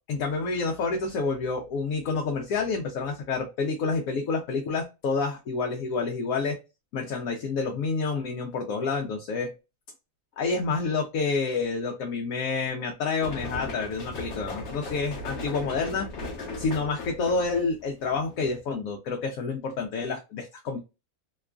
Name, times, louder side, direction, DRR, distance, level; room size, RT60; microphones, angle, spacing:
voice 1, 0.1-6.6 6.9-9.5 10.4-16.1 16.6-20.8, left 4 dB, 90° left, 2 dB, 1.0 m, -28 dB
sound 1, 13.2-18.6, left 2 dB, 60° left, 1.0 m, -37 dB
2.9 x 2.3 x 2.3 m, 0.26 s
omnidirectional pair, 1.4 m